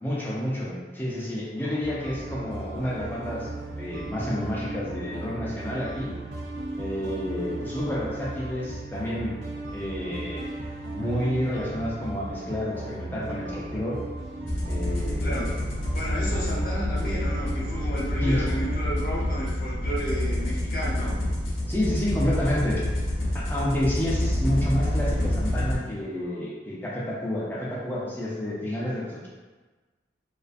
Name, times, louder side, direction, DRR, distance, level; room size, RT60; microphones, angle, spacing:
voice 1, 0.0-6.1 6.8-9.3 9.7-10.5 10.9-14.1 14.7-15.5 16.3-16.5 18.2-18.5 21.7-29.3, left 1 dB, 10° left, -6 dB, 0.4 m, -30 dB
sound 1, 1.8-18.8, right 2 dB, 75° right, 0.6 m, -36 dB
sound 2, 14.5-25.8, left 1 dB, 85° left, 0.6 m, -27 dB
voice 2, 15.2-15.5 15.9-21.2, equal, 50° left, -7 dB, 0.7 m, -32 dB
2.3 x 2.3 x 2.4 m, 1.3 s
head